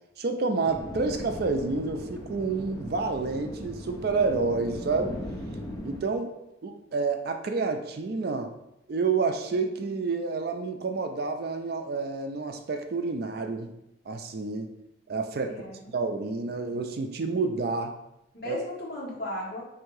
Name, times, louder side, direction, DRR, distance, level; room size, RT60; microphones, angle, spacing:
voice 1, 0.2-5.2 5.8-6.3 6.6-8.5 8.9-13.7 14.1-14.7 15.1-15.6 15.9-17.9 18.4-18.6, right 4 dB, 55° right, 5 dB, 0.4 m, -29 dB
sound 1, 0.7-6.0, left 1 dB, 20° left, 0.5 m, -38 dB
voice 2, 15.4-15.9 18.3-19.6, left 1 dB, 55° left, -5 dB, 1.3 m, -36 dB
3.6 x 2.7 x 4.6 m, 0.87 s
head